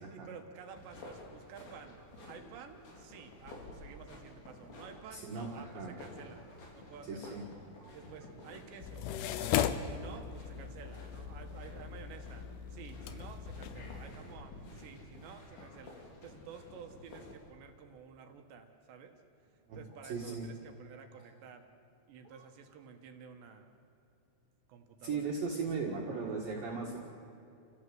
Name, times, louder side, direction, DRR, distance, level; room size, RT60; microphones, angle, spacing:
voice 1, 0.0-6.4 6.7-7.5 7.9-19.2 19.5-21.7 22.1-23.7 24.7-25.3, right 6 dB, 70° right, 5 dB, 3.3 m, -52 dB
sound 1, 0.6-17.3, left 2 dB, 65° left, 5.8 m, -51 dB
voice 2, 5.1-6.0 7.1-7.4 7.8-8.0 19.7-20.5 22.2-22.4 25.0-27.0, right 4 dB, 55° right, -2 dB, 3.1 m, -38 dB
sound 2, 8.8-14.1, left 9 dB, 90° left, 2.1 m, -37 dB
28.5 x 16.0 x 7.8 m, 2.8 s
omnidirectional pair, 5.6 m